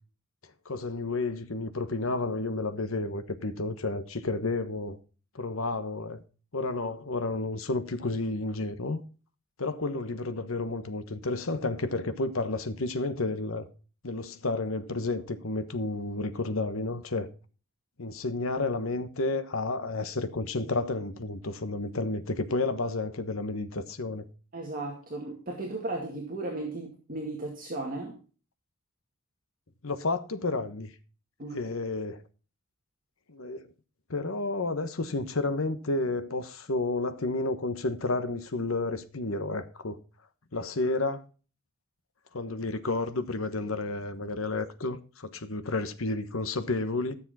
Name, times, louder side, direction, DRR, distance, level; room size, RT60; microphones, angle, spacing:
voice 1, 0.6-5.0 5.3-6.2 6.5-9.0 9.6-13.7 14.0-17.3 18.0-24.2 29.8-30.9 31.5-32.2 33.3-33.6 34.1-40.0 40.5-41.2 42.3-47.1, left 2 dB, 75° left, 1.2 m, -31 dB
voice 2, 24.5-28.2 31.4-31.6, right 2 dB, 45° right, 2.1 m, -35 dB
13.0 x 7.0 x 4.1 m
head